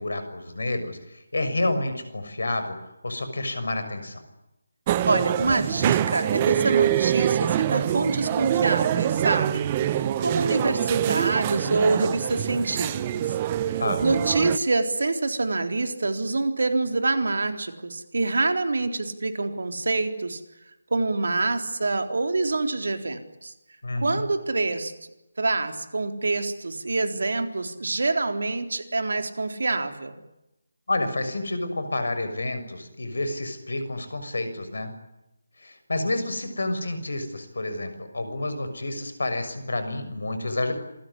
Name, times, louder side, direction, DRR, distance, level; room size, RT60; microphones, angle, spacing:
voice 1, 0.0-2.8 3.0-4.2 13.8-14.0 23.8-24.2 30.9-34.9 35.6-40.7, left 2 dB, 65° left, 9 dB, 6.6 m, -29 dB
sound 1, 4.9-14.6, right 11 dB, 25° right, 1.0 m, -25 dB
voice 2, 5.1-13.3 13.6-20.4 20.9-23.5 24.0-24.9 25.4-30.2, right 3 dB, 65° right, 7 dB, 3.9 m, -26 dB
27.0 x 20.5 x 9.9 m, 0.90 s
figure-of-eight pair, 155°, 0 cm